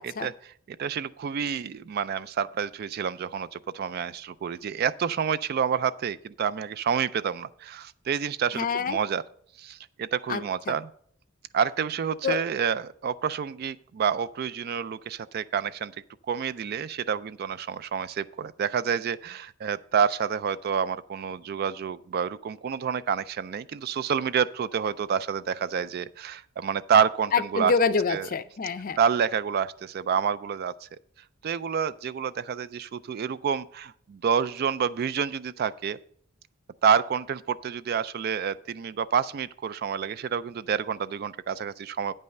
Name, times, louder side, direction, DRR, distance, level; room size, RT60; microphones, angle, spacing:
voice 1, 0.0-9.2 9.6-10.9 11.5-15.9 16.3-27.7 28.1-28.3 29.0-30.9 31.4-36.0 36.8-42.1, right 7 dB, 45° right, 0.3 m, -28 dB
voice 2, 8.5-9.0 10.3-10.7 12.2-12.4 27.3-29.0, left 5 dB, 40° left, 0.5 m, -27 dB
9.1 x 5.5 x 6.5 m
head